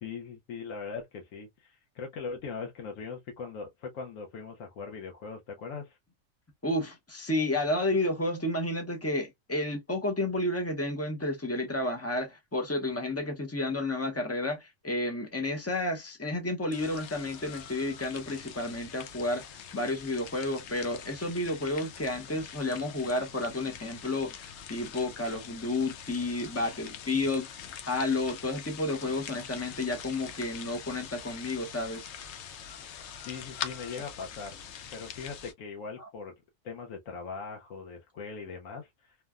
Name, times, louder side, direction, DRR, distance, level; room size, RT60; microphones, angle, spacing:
voice 1, 0.0-6.0 33.3-34.6 34.9-36.3 36.6-39.2, left 5 dB, 90° left, 1.1 m, -40 dB
voice 2, 6.6-27.5 27.9-32.1 36.0-36.1, left 2 dB, 20° left, 0.5 m, -31 dB
sound 1, 16.7-35.5, left 8 dB, 70° left, 0.8 m, -44 dB
3.2 x 2.2 x 2.3 m
omnidirectional pair, 1.3 m